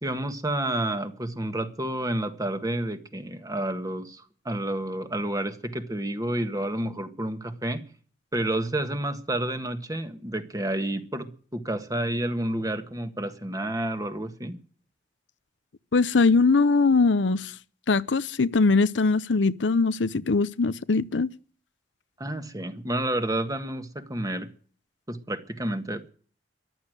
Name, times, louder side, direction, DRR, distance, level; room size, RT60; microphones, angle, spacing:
voice 1, 0.0-7.8 8.3-14.6 22.2-24.5 25.1-26.1, right 1 dB, 20° right, 1.7 m, -30 dB
voice 2, 15.9-17.5 17.9-21.3, left 4 dB, 90° left, 0.7 m, -21 dB
14.5 x 12.0 x 7.9 m
head